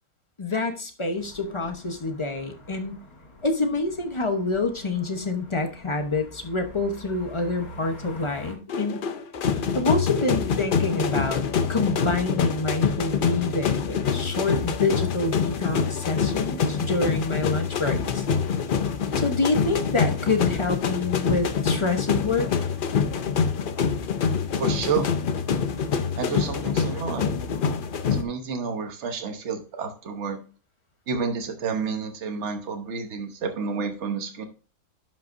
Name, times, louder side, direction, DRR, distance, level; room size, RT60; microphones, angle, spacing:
voice 1, 0.4-3.0 3.4-9.0 9.7-11.4 11.7-18.2 19.2-22.5, left 3 dB, 25° left, 5 dB, 0.8 m, -27 dB
sound 1, 1.2-8.5, left 1 dB, 75° left, 2.5 m, -45 dB
sound 2, 8.7-28.2, left 6 dB, 55° left, 0.6 m, -25 dB
voice 2, 24.6-25.1 26.2-27.3 28.0-30.4 31.1-34.4, right 5 dB, 55° right, 5 dB, 1.3 m, -30 dB
11.5 x 5.6 x 2.6 m, 0.36 s
omnidirectional pair, 1.6 m